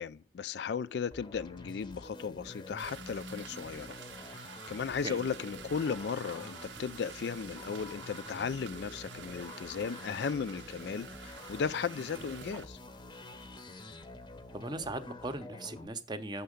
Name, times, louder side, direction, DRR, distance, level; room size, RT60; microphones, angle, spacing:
voice 1, 0.0-4.0 4.3-12.8, left 6 dB, 65° left, 0.3 m, -36 dB
sound 1, 1.1-15.9, left 2 dB, 25° left, 0.7 m, -48 dB
sound 2, 2.8-12.7, right 7 dB, 85° right, 0.6 m, -49 dB
voice 2, 14.5-16.4, right 2 dB, 25° right, 0.6 m, -38 dB
7.2 x 5.6 x 5.0 m
head